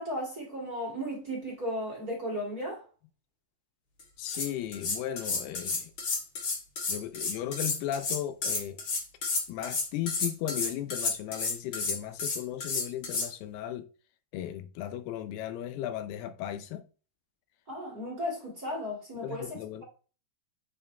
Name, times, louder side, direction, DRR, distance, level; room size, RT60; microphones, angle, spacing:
voice 1, 0.0-2.8 17.7-19.8, equal, 25° right, 2.4 m, -35 dB
sound 1, 4.0-13.3, left 4 dB, 45° left, 1.7 m, -31 dB
voice 2, 4.2-5.9 6.9-8.8 9.5-13.9 14.3-16.8 19.2-19.8, left 11 dB, 80° left, 2.7 m, -36 dB
8.2 x 4.9 x 3.4 m
omnidirectional pair, 4.6 m